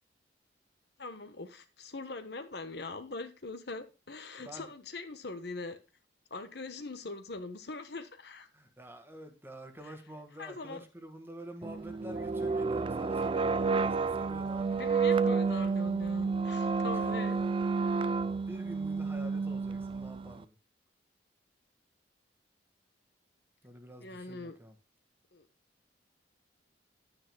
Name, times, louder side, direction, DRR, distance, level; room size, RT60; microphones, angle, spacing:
voice 1, 1.0-5.8 6.3-8.5 9.8-9.9 10.4-10.8 14.7-17.4 24.0-24.6 25.3-25.5, left 3 dB, 60° left, 9 dB, 1.2 m, -42 dB
voice 2, 4.4-4.7 8.5-14.9 16.9-17.1 17.8-18.0 18.5-20.5 23.6-24.8, equal, 15° right, 6 dB, 1.6 m, -48 dB
sound 1, 11.6-20.4, right 4 dB, 30° right, 0.4 m, -30 dB
10.5 x 9.5 x 2.3 m, 0.30 s
head